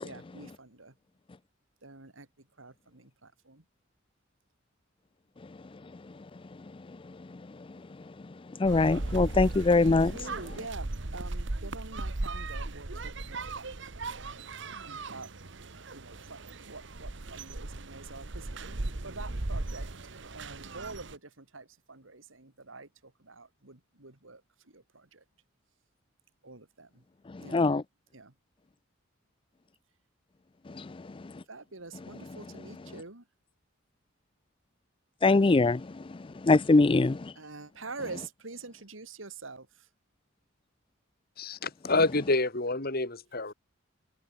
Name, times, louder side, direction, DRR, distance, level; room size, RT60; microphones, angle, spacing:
voice 1, 0.0-0.9 1.8-2.3 2.6-3.6 9.8-14.3 14.8-15.3 15.9-18.5 19.0-19.9 20.3-24.4 24.7-25.2 26.4-27.0 27.4-27.7 28.1-28.3 31.5-33.2 37.3-39.9, right 3 dB, 85° right, 3.1 m, -46 dB
voice 2, 8.6-10.1 27.5-27.8 30.8-30.9 35.2-35.9 36.4-37.3, left 3 dB, 25° left, 0.4 m, -22 dB
sound 1, 8.6-21.2, right 2 dB, 65° right, 1.4 m, -37 dB
voice 3, 41.4-43.5, left 2 dB, 50° left, 3.1 m, -28 dB
head